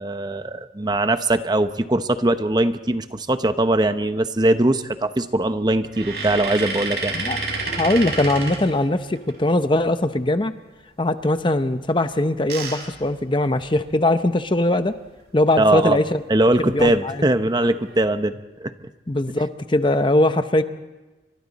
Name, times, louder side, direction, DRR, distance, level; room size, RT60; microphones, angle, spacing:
voice 1, 0.0-7.1 15.6-16.0 16.3-18.7, right 1 dB, 25° right, 10 dB, 0.8 m, -21 dB
sound 1, 5.8-9.3 12.0-13.9 14.5-14.6 14.8-15.0 16.5-16.8 17.5-18.0, right 3 dB, 60° right, 6.5 m, -30 dB
voice 2, 7.8-10.5 11.0-14.9 15.3-16.2 16.6-17.2 19.1-20.6, left 1 dB, 25° left, 10 dB, 0.8 m, -21 dB
29.5 x 24.5 x 4.1 m, 1.1 s
head